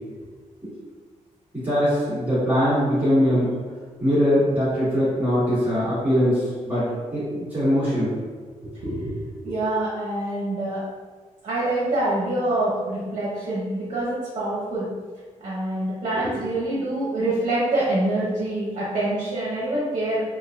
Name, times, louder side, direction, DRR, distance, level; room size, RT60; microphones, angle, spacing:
voice 1, 1.5-3.6 4.0-8.1, equal, 15° right, -13 dB, 1.4 m, -21 dB
voice 2, 8.8-10.8 11.4-14.9 15.4-20.2, right 1 dB, 55° right, -8 dB, 0.8 m, -25 dB
3.7 x 2.6 x 2.3 m, 1.5 s
wide cardioid pair, 155°, 14 cm